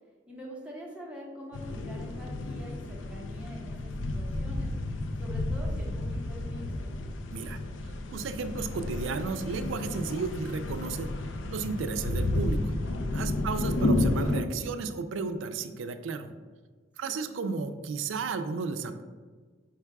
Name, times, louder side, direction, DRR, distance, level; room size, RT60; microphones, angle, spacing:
voice 1, 0.3-4.7 5.2-6.9 13.3-13.6 17.0-17.2, equal, 5° right, -4 dB, 0.8 m, -45 dB
sound 1, 1.5-14.4, left 2 dB, 80° left, 0.4 m, -32 dB
voice 2, 7.8-11.1 11.5-12.7 13.1-16.3 17.0-19.0, right 4 dB, 85° right, 9 dB, 0.4 m, -33 dB
4.6 x 2.3 x 4.6 m, 1.4 s
head